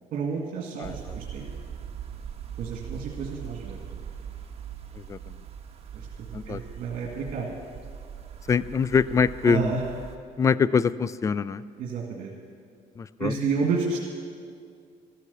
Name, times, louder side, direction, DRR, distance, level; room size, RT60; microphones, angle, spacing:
voice 1, 0.1-1.5 2.6-3.8 5.9-7.5 9.4-9.8 11.8-12.3 13.2-14.0, right 5 dB, 70° right, -1 dB, 1.9 m, -30 dB
voice 2, 0.8-1.1 5.0-5.2 6.3-6.6 8.5-9.7 10.4-11.6 13.0-13.3, left 6 dB, 20° left, 17 dB, 0.3 m, -24 dB
sound 1, 0.8-10.2, right 8 dB, 45° right, 1.4 m, -41 dB
13.5 x 13.5 x 7.0 m, 2.3 s
cardioid pair, 130°, 14 cm